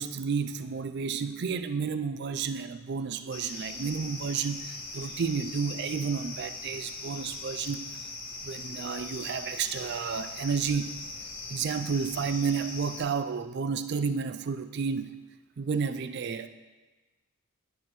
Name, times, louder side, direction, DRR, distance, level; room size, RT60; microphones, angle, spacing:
voice 1, 0.0-7.9 8.4-11.0 11.5-15.1 15.6-16.5, right 5 dB, 50° right, 11 dB, 0.4 m, -31 dB
sound 1, 3.3-13.0, left 3 dB, 40° left, 1.1 m, -40 dB
11.5 x 5.9 x 3.1 m, 1.2 s
head